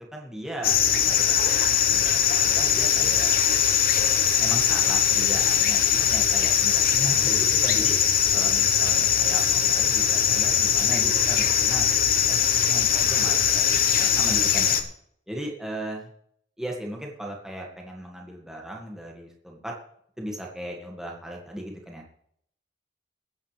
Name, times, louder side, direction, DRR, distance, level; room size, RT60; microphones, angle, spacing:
voice 1, 0.1-1.4 1.9-3.3 3.9-8.0 8.3-11.9 12.3-14.8 15.3-16.1 16.6-19.7 20.2-22.1, right 1 dB, 5° right, -2 dB, 2.0 m, -37 dB
sound 1, 0.6-14.8, left 9 dB, 50° left, 1.2 m, -21 dB
21.5 x 9.4 x 3.4 m, 0.67 s
head